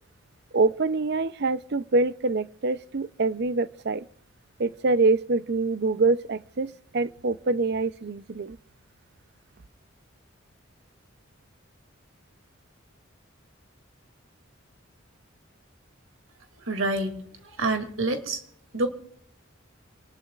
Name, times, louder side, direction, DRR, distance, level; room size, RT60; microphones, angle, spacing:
voice 1, 0.5-4.1 4.6-8.6, right 3 dB, 55° right, 0.6 m, -25 dB
voice 2, 16.7-17.1 17.6-18.4 18.7-18.9, right 2 dB, 80° right, 2.5 m, -26 dB
27.5 x 19.5 x 2.4 m
head